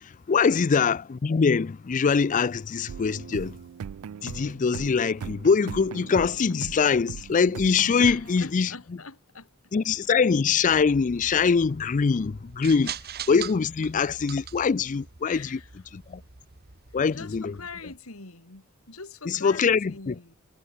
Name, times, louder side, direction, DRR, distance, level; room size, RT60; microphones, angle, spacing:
voice 1, 0.0-3.6 4.2-8.7 9.7-12.9 13.3-15.6 15.9-16.2 16.9-17.6 19.2-20.2, left 5 dB, 35° left, 0.4 m, -23 dB
sound 1, 2.9-8.4, right 7 dB, 80° right, 0.4 m, -39 dB
sound 2, 7.7-11.1, equal, 10° right, 5.4 m, -65 dB
voice 2, 8.0-9.5 15.2-15.7 17.1-20.4, left 4 dB, 80° left, 2.9 m, -43 dB
sound 3, 10.6-18.0, right 8 dB, 50° right, 1.8 m, -43 dB
head